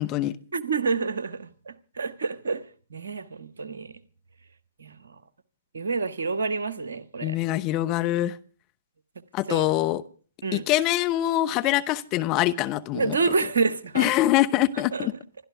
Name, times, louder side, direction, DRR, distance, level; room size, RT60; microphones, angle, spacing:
voice 1, 0.0-0.4 7.2-8.4 9.3-10.0 10.5-13.2 13.9-15.1, left 14 dB, 30° left, 1.0 m, -24 dB
voice 2, 0.5-4.0 4.8-5.2 5.7-7.4 9.5-9.7 10.4-10.6 12.9-14.1 14.9-15.1, right 4 dB, 70° right, 1.4 m, -28 dB
27.0 x 12.5 x 3.5 m
figure-of-eight pair, 120°, 0 cm